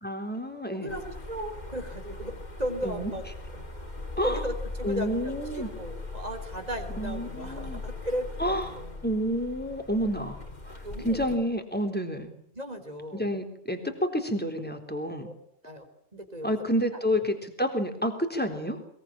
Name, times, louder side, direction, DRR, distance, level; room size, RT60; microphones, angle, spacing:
voice 1, 0.0-1.0 2.8-3.1 4.2-4.4 4.8-5.7 7.0-7.8 8.4-8.7 9.0-12.3 13.1-15.3 16.4-18.8, equal, 5° left, 5 dB, 3.7 m, -29 dB
voice 2, 0.7-3.2 3.5-3.6 4.2-9.1 10.8-11.3 12.5-13.4 15.2-15.3 15.6-15.8 16.1-16.6 16.9-17.2, equal, 30° right, 6 dB, 4.0 m, -36 dB
sound 1, 0.9-11.4, left 2 dB, 35° left, 3.4 m, -40 dB
22.5 x 22.0 x 8.9 m, 0.64 s
omnidirectional pair, 1.3 m